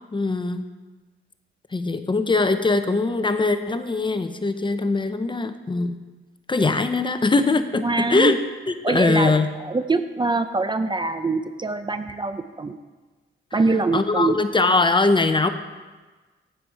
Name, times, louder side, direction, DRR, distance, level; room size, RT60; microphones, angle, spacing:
voice 1, 0.1-0.7 1.7-6.0 6.5-8.4 8.7-9.5 13.5-13.6 13.9-15.5, left 3 dB, 25° left, 9 dB, 0.6 m, -21 dB
voice 2, 7.8-8.4 8.8-9.3 9.6-12.8 13.5-14.4, right 3 dB, 20° right, 10 dB, 0.4 m, -23 dB
9.7 x 7.7 x 4.7 m, 1.3 s
cardioid pair, 90°, 21 cm